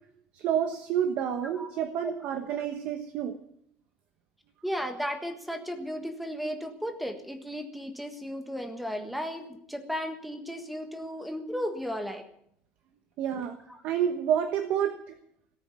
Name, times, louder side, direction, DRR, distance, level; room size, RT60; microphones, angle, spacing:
voice 1, 0.3-3.4 13.2-13.6 13.8-15.1, right 9 dB, 45° right, 7 dB, 1.1 m, -29 dB
voice 2, 4.6-12.3 13.7-13.8, equal, ahead, 6 dB, 1.5 m, -35 dB
18.0 x 8.4 x 9.5 m, 0.71 s
cardioid pair, 180°, 4 cm